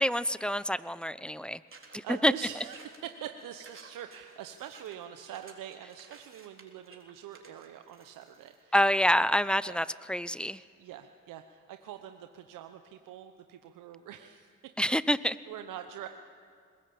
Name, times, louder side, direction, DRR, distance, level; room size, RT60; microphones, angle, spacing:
voice 1, 0.0-1.6 1.9-2.3 8.7-10.6 14.8-15.4, equal, 5° left, 16 dB, 0.8 m, -27 dB
sound 1, 1.7-8.6, right 4 dB, 40° right, 3.8 m, -55 dB
voice 2, 2.0-8.7 9.7-9.8 10.8-14.7 15.1-16.1, right 10 dB, 80° right, 7 dB, 1.0 m, -44 dB
21.0 x 20.5 x 8.7 m, 2.2 s
supercardioid pair, 50°, 32 cm